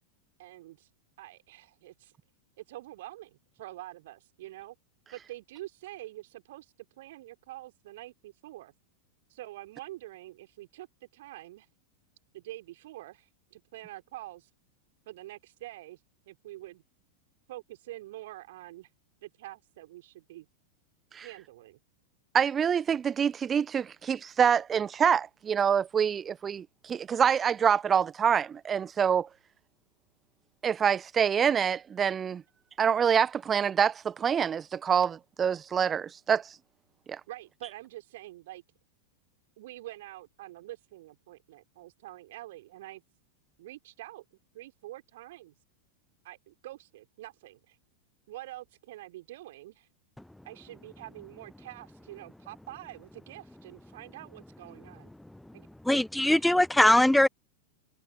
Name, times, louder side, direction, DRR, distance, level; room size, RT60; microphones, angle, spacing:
voice 1, 0.4-0.9 1.2-2.1 2.6-4.8 5.1-8.7 9.3-11.7 12.3-14.5 15.1-16.8 17.5-18.9 19.2-20.5 21.2-21.8 37.3-38.6 39.6-43.0 43.6-44.2 44.5-45.5 46.2-47.8 48.3-49.9 50.4-55.1 55.5-56.4, right 16 dB, 55° right, 3.4 m, -46 dB
voice 2, 22.3-29.3 30.6-32.4 32.8-36.6 37.1-37.2, right 7 dB, 20° right, 1.1 m, -26 dB
voice 3, 55.8-57.3, left 1 dB, 5° left, 0.5 m, -21 dB
figure-of-eight pair, 90°, 0 cm